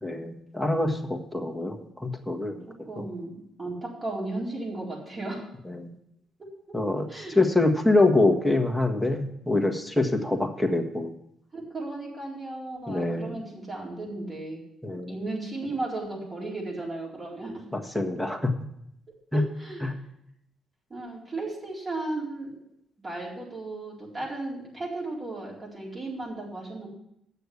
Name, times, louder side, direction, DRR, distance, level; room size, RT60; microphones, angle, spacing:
voice 1, 0.0-3.0 5.7-5.9 6.7-7.1 7.3-11.1 12.9-13.4 14.8-15.2 17.7-18.5 19.3-19.4 19.8-19.9, left 2 dB, ahead, 3 dB, 1.5 m, -25 dB
voice 2, 2.6-5.5 6.4-6.5 7.1-7.5 11.5-14.6 15.1-17.7 19.3-19.9 20.9-22.5 23.0-26.9, right 2 dB, 35° right, -3 dB, 4.2 m, -35 dB
8.1 x 6.7 x 8.2 m, 0.77 s
cardioid pair, 90°, 0 cm